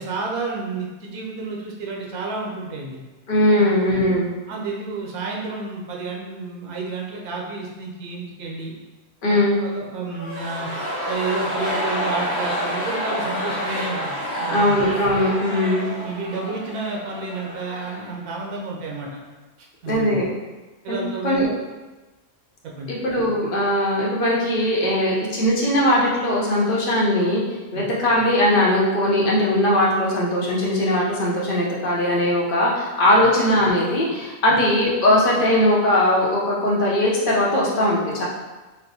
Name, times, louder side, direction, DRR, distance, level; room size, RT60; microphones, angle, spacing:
voice 1, 0.0-3.0 3.5-3.7 4.5-8.7 9.3-10.7 11.1-14.8 15.6-19.2 19.8-20.2 20.8-21.5 22.6-22.9 27.7-27.9 34.5-34.6, right 3 dB, 90° right, -2 dB, 1.2 m, -31 dB
voice 2, 3.3-4.3 9.2-9.6 14.5-15.9 19.9-20.2 20.9-21.5 22.9-27.4 27.7-38.2, left 1 dB, 50° left, -5 dB, 0.7 m, -20 dB
sound 1, 10.1-18.2 18.4-18.5, equal, 60° right, 1.3 m, -29 dB
4.3 x 2.0 x 2.7 m, 1.2 s
omnidirectional pair, 1.5 m